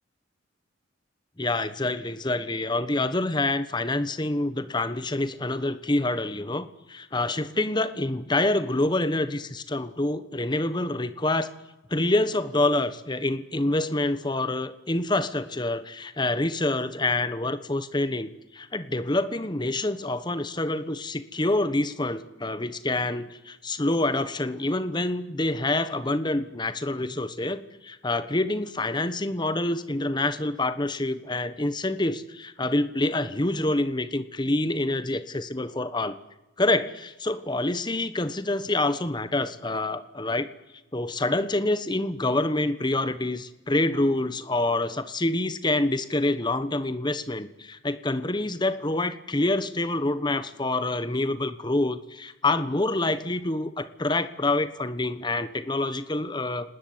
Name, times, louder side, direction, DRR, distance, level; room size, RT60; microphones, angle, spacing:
voice 1, 1.4-11.5 11.9-36.2 36.6-40.5 40.9-56.8, left 2 dB, 25° left, 12 dB, 1.2 m, -27 dB
29.5 x 19.0 x 9.6 m, 1.1 s
head